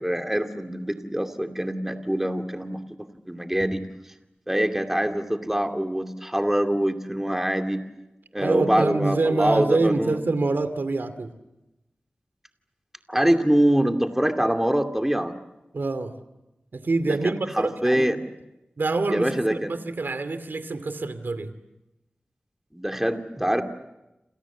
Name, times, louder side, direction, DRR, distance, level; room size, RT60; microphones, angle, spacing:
voice 1, 0.0-2.8 3.3-3.8 4.5-7.8 8.3-10.2 13.1-15.3 17.0-18.2 19.1-19.7 22.7-23.6, right 1 dB, 10° right, 6 dB, 2.4 m, -24 dB
voice 2, 8.4-11.3 15.7-16.1 16.7-18.1 18.8-21.5, right 3 dB, 70° right, 11 dB, 2.6 m, -26 dB
29.0 x 27.5 x 7.3 m, 0.95 s
wide cardioid pair, 65°, 4 cm